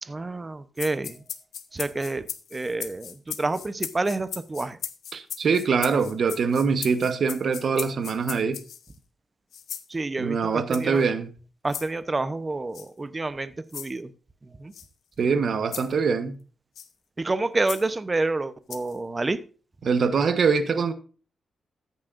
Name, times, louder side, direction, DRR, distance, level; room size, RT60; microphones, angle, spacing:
voice 1, 0.0-1.2 1.7-2.2 2.5-4.8 9.9-11.0 11.6-14.1 14.6-14.7 17.2-19.4, right 2 dB, 25° right, 0.9 m, -28 dB
sound 1, 0.8-8.9 9.5-9.9 10.7-11.0 11.7-11.9 12.7-12.9 13.7-13.9 14.7-14.9 15.7-15.9 16.7-16.9 17.7-17.8 18.7-19.0, left 8 dB, 85° left, 1.1 m, -37 dB
voice 2, 5.1-8.6 10.2-11.3 15.2-16.3 19.8-20.9, right 5 dB, 60° right, 1.2 m, -23 dB
14.0 x 9.6 x 2.6 m
cardioid pair, 95°, 0 cm